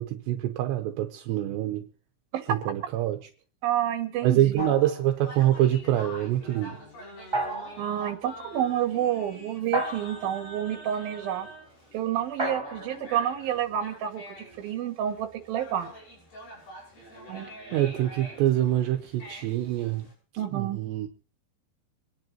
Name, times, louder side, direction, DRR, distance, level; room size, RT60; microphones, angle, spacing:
voice 1, 0.0-1.9 2.5-3.2 4.2-6.8 17.7-20.1 20.5-21.1, right 13 dB, 80° right, 5 dB, 3.0 m, -25 dB
voice 2, 3.6-4.6 7.8-11.5 11.9-14.2 14.6-15.9 17.3-17.5 20.4-20.8, right 10 dB, 60° right, 4 dB, 3.3 m, -29 dB
sound 1, 4.6-5.7 7.3-7.9 9.7-10.4 12.4-14.1, equal, 15° right, 5.3 m, -34 dB
Conversation, 5.1-20.1, equal, 60° left, 8.8 m, -47 dB
Singing, 5.6-11.6, equal, 45° left, 6.7 m, -46 dB
26.5 x 10.5 x 2.9 m, 0.41 s
omnidirectional pair, 5.1 m